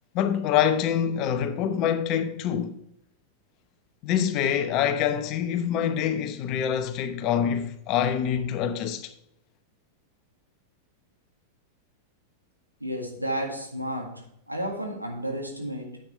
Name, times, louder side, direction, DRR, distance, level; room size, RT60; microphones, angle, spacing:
voice 1, 0.1-2.7 4.0-9.1, left 9 dB, 40° left, 0.9 m, -25 dB
voice 2, 12.8-16.0, right 1 dB, 90° right, 1.9 m, -32 dB
10.0 x 8.1 x 3.3 m
figure-of-eight pair, 90°, 0 cm